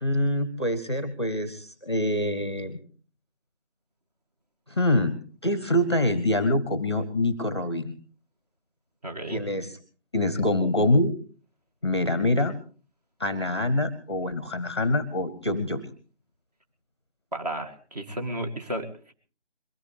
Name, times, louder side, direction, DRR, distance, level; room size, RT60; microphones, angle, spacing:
voice 1, 0.0-2.8 4.7-5.2 5.4-7.9 9.3-9.8 10.1-11.1 11.8-12.6 13.2-15.9, left 1 dB, 25° left, 14 dB, 0.9 m, -25 dB
voice 2, 9.0-9.4 17.3-19.1, right 1 dB, 35° right, 4 dB, 2.3 m, -33 dB
22.5 x 16.5 x 3.4 m, 0.39 s
figure-of-eight pair, 160°, 35 cm